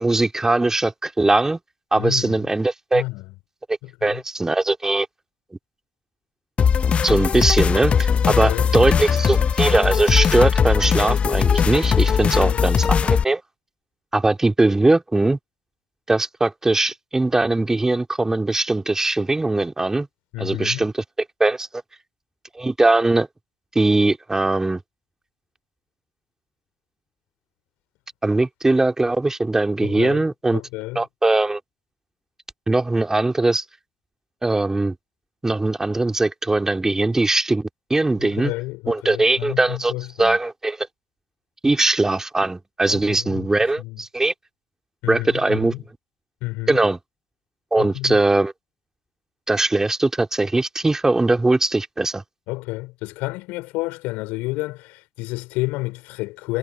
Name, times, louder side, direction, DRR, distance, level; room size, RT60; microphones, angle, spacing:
voice 1, 0.0-1.6 1.9-3.0 4.0-5.1 7.0-13.4 14.1-15.4 16.1-20.1 20.4-20.9 21.4-21.7 22.5-23.3 23.7-24.8 28.2-30.6 30.9-31.6 32.7-33.6 34.4-34.9 35.4-38.5 38.9-39.9 40.2-40.9 41.6-44.3 45.1-45.8 46.7-47.0 47.7-48.5 49.5-52.2, right 2 dB, 20° right, 3.0 m, -20 dB
voice 2, 2.0-2.5 2.9-3.2 3.8-4.2 8.2-8.9 12.2-12.6 20.3-20.8 29.8-30.2 30.5-31.0 38.2-40.4 42.9-43.5 43.8-44.0 45.0-45.8 46.4-46.8 47.8-48.2 52.5-56.6, left 22 dB, 70° left, 4.4 m, -30 dB
sound 1, 6.6-13.2, left 7 dB, 45° left, 0.7 m, -19 dB
hypercardioid pair, 45°, 3 cm